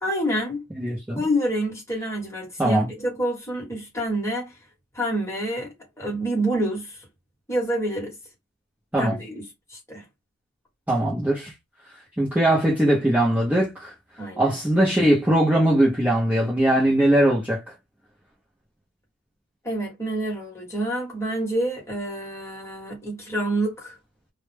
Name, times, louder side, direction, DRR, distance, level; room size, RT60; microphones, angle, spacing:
voice 1, 0.0-0.7 1.1-4.6 4.9-7.0 7.5-8.2 9.0-9.4 9.7-10.0 14.2-14.5 19.6-24.0, right 1 dB, 10° left, 1.0 m, -27 dB
voice 2, 0.8-1.2 2.6-2.9 8.9-9.2 10.9-11.5 12.2-13.9 14.4-17.7, right 1 dB, 5° right, 0.5 m, -20 dB
2.1 x 2.1 x 3.2 m
head